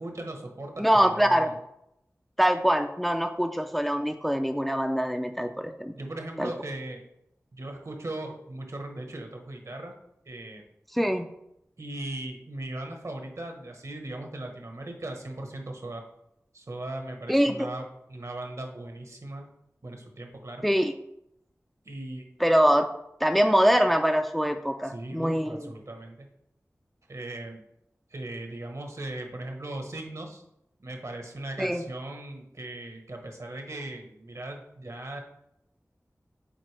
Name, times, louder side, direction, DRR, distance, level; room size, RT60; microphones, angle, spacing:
voice 1, 0.0-1.6 5.9-7.0 7.5-9.9 10.2-10.6 11.8-16.0 16.5-19.5 19.8-20.6 21.8-22.2 24.8-26.3 27.1-27.6 28.1-30.4 30.8-35.2, right 1 dB, 65° right, 3 dB, 1.1 m, -38 dB
voice 2, 0.8-1.5 2.4-5.9 6.4-6.5 10.9-11.3 17.3-17.7 20.6-20.9 22.4-22.9 23.2-25.6 31.6-31.8, equal, ahead, 6 dB, 0.4 m, -24 dB
7.7 x 4.3 x 3.3 m, 0.80 s
wide cardioid pair, 60°, 6 cm